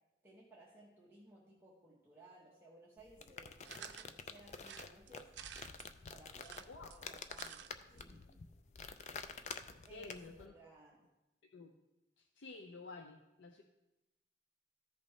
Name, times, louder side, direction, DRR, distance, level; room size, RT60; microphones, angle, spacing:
voice 1, 0.2-5.3 6.1-8.3 9.9-11.1, right 2 dB, 15° right, -5 dB, 1.0 m, -60 dB
sound 1, 3.0-10.5, left 5 dB, 40° left, 0.4 m, -49 dB
sound 2, 3.6-4.1 4.6-5.9 6.3-7.7 8.0-8.1 8.3-8.4, right 9 dB, 85° right, 0.5 m, -51 dB
voice 2, 9.9-10.5 11.5-11.7 12.2-13.6, left 3 dB, 90° left, 4 dB, 0.6 m, -51 dB
14.0 x 5.3 x 3.2 m, 0.99 s
head